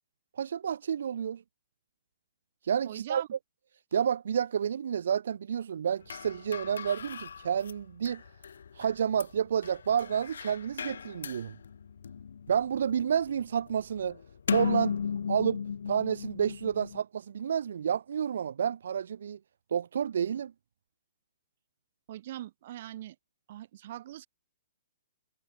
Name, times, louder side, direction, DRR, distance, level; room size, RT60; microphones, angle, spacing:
voice 1, 0.4-1.4 2.6-3.2 3.9-8.2 8.7-11.6 12.5-14.2 14.5-14.9 15.3-19.4 19.7-20.5, right 8 dB, 70° right, 0.9 m, -30 dB
voice 2, 2.8-3.3 22.1-23.1 23.5-24.3, right 13 dB, 45° right, 1.6 m, -41 dB
sound 1, 6.0-17.0, left 7 dB, 80° left, 2.1 m, -37 dB
hypercardioid pair, 165°, 0 cm